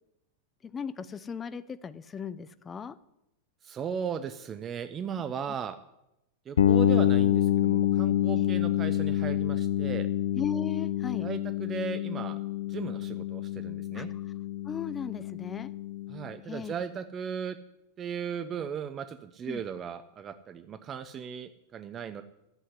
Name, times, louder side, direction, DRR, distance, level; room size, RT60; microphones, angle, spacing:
voice 1, 0.6-3.0 8.4-8.5 10.4-11.3 13.9-14.2 14.6-15.7 16.5-16.7 19.5-19.6, left 6 dB, 20° left, 15 dB, 0.6 m, -37 dB
voice 2, 3.6-5.8 6.5-10.1 11.2-12.4 12.7-14.1 16.1-17.6 18.0-22.2, right 7 dB, 30° right, 12 dB, 0.7 m, -37 dB
sound 1, 6.6-16.3, left 11 dB, 75° left, 0.6 m, -27 dB
11.5 x 7.9 x 9.8 m, 0.86 s
hypercardioid pair, 95°, 0 cm